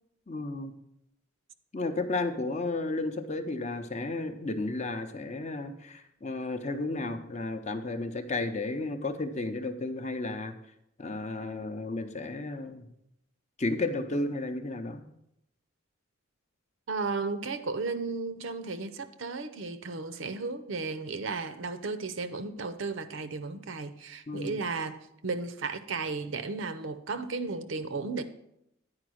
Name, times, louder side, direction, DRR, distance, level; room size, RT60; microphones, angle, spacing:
voice 1, 0.3-0.7 1.7-10.5 11.0-12.9 13.6-15.0 24.3-24.5, left 2 dB, 30° left, 0.6 m, -33 dB
voice 2, 16.9-28.2, right 4 dB, 65° right, 0.6 m, -34 dB
9.6 x 4.9 x 6.2 m
head